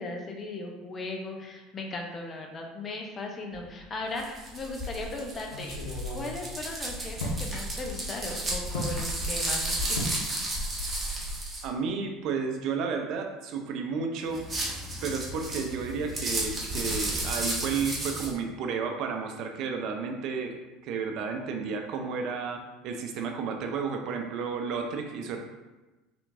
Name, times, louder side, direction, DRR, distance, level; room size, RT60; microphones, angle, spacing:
voice 1, 0.0-10.0 10.3-10.4, left 2 dB, 35° left, 1 dB, 0.8 m, -37 dB
sound 1, 3.5-4.1 4.5-4.6 5.4-7.4 8.7-9.0 10.0-10.2 10.6-10.9 11.1-11.3, equal, 80° left, 0.7 m, -36 dB
sound 2, 4.2-11.6 14.3-18.3, right 1 dB, 20° right, 1.3 m, -33 dB
voice 2, 11.6-14.4 15.0-20.5 20.8-25.4, right 5 dB, 55° right, 4 dB, 0.5 m, -32 dB
4.3 x 3.5 x 2.6 m, 1.1 s
hypercardioid pair, 70°, 0 cm